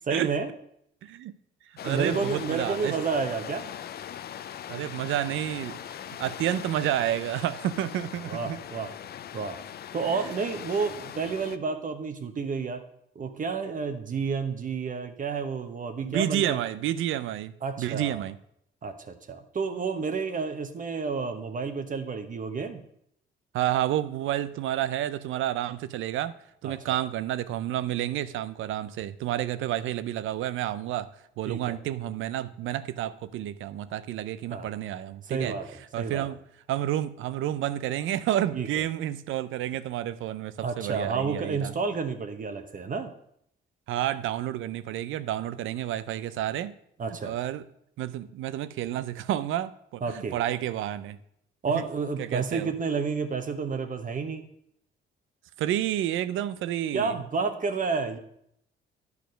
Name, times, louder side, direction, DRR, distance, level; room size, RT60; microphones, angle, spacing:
voice 1, 0.1-0.5 1.8-3.6 8.3-8.9 9.3-9.6 9.9-12.8 13.1-16.6 17.6-18.2 18.8-22.8 26.6-26.8 31.5-31.8 34.5-34.7 35.2-35.6 36.0-36.3 38.5-38.7 40.6-43.1 47.0-47.4 50.0-50.4 51.6-54.5 56.9-58.2, right 5 dB, 40° right, 1.0 m, -30 dB
voice 2, 1.0-1.4 1.8-3.0 4.7-8.6 10.1-10.3 16.0-18.4 23.5-26.3 26.6-31.1 31.4-35.6 35.9-36.4 36.7-41.7 43.9-46.8 47.2-47.6 48.0-51.2 51.7-51.8 52.2-52.7 55.6-57.2, right 12 dB, 80° right, 0.5 m, -30 dB
sound 1, 1.8-11.6, left 10 dB, 55° left, 0.5 m, -40 dB
10.0 x 4.8 x 6.2 m
cardioid pair, 90°, 20 cm